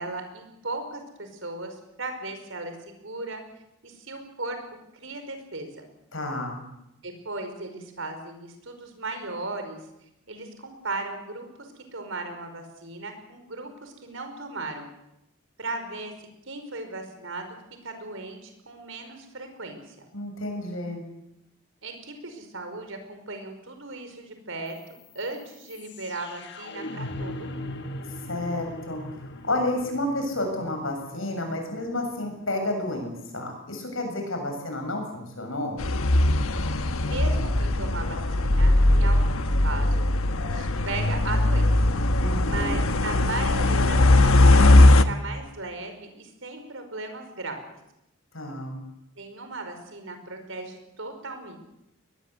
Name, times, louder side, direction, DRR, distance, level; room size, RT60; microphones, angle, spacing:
voice 1, 0.0-2.8 3.0-3.4 3.8-4.6 4.9-5.9 7.0-9.8 10.3-14.9 15.6-17.6 17.8-20.1 21.8-28.0 37.0-40.0 40.5-41.7 42.5-47.6 49.2-51.6, right 2 dB, 70° right, 6 dB, 5.2 m, -37 dB
voice 2, 6.1-6.6 20.1-21.0 28.2-29.0 29.3-35.9 42.2-42.8 48.3-48.8, left 1 dB, 75° left, 3 dB, 7.4 m, -31 dB
sound 1, 24.7-34.7, left 1 dB, 55° left, 1.7 m, -41 dB
sound 2, 35.8-45.0, left 2 dB, 90° left, 1.3 m, -20 dB
22.0 x 20.5 x 8.2 m, 0.86 s
head